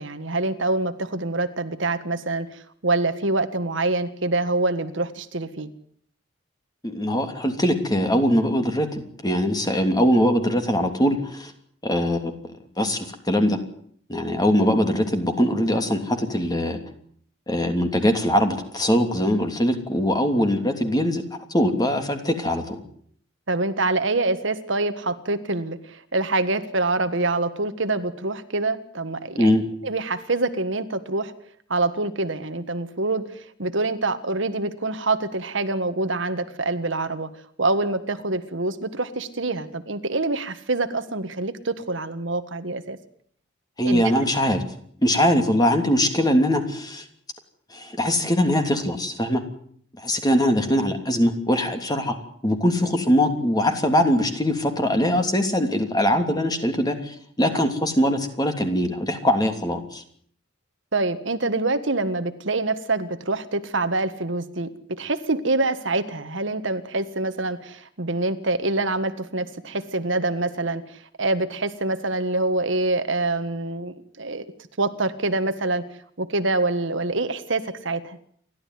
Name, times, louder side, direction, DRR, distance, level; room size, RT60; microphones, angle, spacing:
voice 1, 0.0-5.7 23.5-29.5 29.8-31.3 31.7-37.3 37.6-43.0 43.8-44.0 57.5-57.6 60.9-70.8 71.2-74.5 74.8-75.8 76.2-78.2, right 2 dB, 65° right, 9 dB, 1.7 m, -25 dB
voice 2, 6.8-11.5 11.8-12.3 12.8-13.6 14.1-16.8 17.5-21.2 21.5-22.8 29.4-29.6 43.8-44.6 45.0-47.0 47.7-49.4 50.0-52.1 52.4-60.0, equal, 20° left, 6 dB, 3.1 m, -22 dB
29.0 x 13.0 x 9.5 m, 0.63 s
head